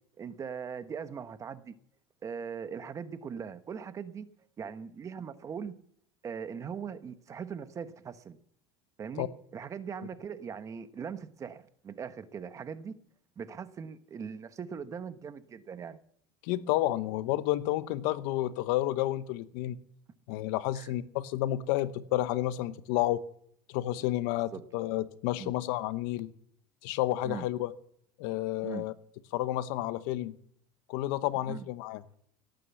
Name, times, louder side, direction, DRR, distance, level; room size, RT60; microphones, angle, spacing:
voice 1, 0.2-1.7 2.2-4.3 4.6-5.8 6.2-8.4 9.0-12.9 13.4-16.0 20.7-20.9 24.5-24.6 25.4-25.5 27.2-27.4 28.6-28.9 31.5-31.7, right 6 dB, 25° right, 11 dB, 1.1 m, -40 dB
voice 2, 16.4-19.8 20.3-23.2 23.7-26.3 26.8-27.7 28.2-28.9 29.3-30.3 30.9-32.0, left 15 dB, 70° left, 14 dB, 1.0 m, -30 dB
17.5 x 9.1 x 7.1 m, 0.66 s
supercardioid pair, 125°, 12 cm